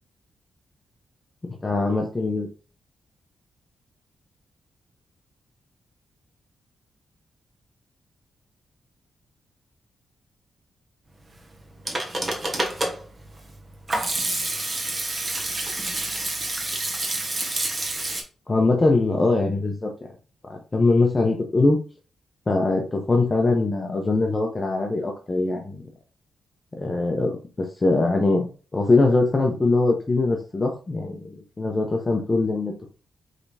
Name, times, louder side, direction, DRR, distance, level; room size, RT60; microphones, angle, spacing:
voice 1, 1.6-2.5 18.5-19.9 20.5-21.8 22.5-25.8 26.7-32.9, left 3 dB, 30° left, 1 dB, 0.7 m, -22 dB
Hands / Sink (filling or washing), 11.5-18.2, right 2 dB, 30° right, 1.2 m, -28 dB
5.0 x 3.4 x 2.7 m, 0.36 s
cardioid pair, 80°, 0 cm